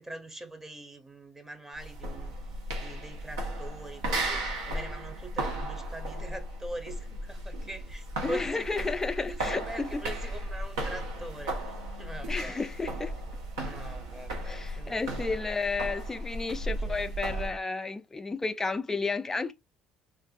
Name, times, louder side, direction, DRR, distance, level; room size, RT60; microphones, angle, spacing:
voice 1, 0.0-2.3 2.8-9.4 9.7-12.7 13.6-15.4 16.8-17.0, right 2 dB, 15° right, 0.7 m, -43 dB
sound 1, 1.7-17.6, right 1 dB, 85° right, 0.7 m, -35 dB
voice 2, 8.2-10.0 12.3-13.1 14.5-19.5, left 4 dB, 15° left, 0.3 m, -32 dB
2.5 x 2.5 x 2.4 m
hypercardioid pair, 60°, 3 cm